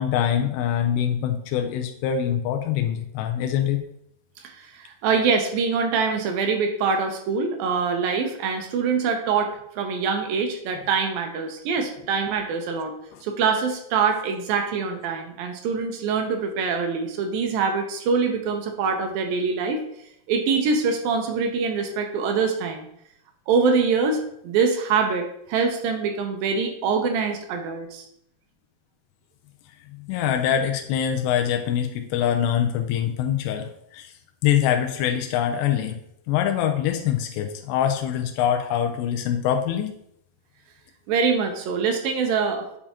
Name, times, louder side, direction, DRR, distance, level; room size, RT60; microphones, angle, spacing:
voice 1, 0.0-3.8 13.1-13.2 29.9-34.1 34.4-36.0 36.3-39.9, left 9 dB, 85° left, 5 dB, 2.8 m, -24 dB
voice 2, 4.4-12.9 13.2-19.8 20.3-22.9 23.5-28.1 41.1-42.7, right 5 dB, 75° right, 4 dB, 2.2 m, -24 dB
8.6 x 6.8 x 2.9 m, 0.75 s
omnidirectional pair, 4.9 m